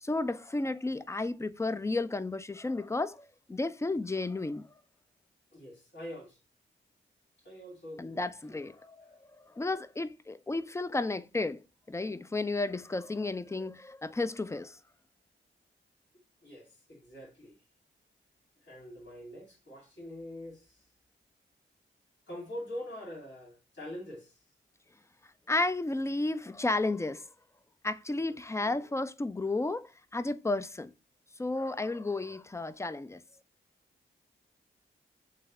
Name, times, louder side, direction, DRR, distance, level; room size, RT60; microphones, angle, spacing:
voice 1, 0.0-4.7 8.0-11.6 11.9-14.8 25.5-27.2 27.8-30.9 31.4-33.2, left 2 dB, 15° left, 0.3 m, -33 dB
voice 2, 5.5-6.4 7.4-8.8 16.4-17.6 18.6-20.8 22.3-24.4 28.6-28.9, left 1 dB, 60° left, 1.9 m, -44 dB
3.2 x 2.3 x 3.5 m
supercardioid pair, 40°, 21 cm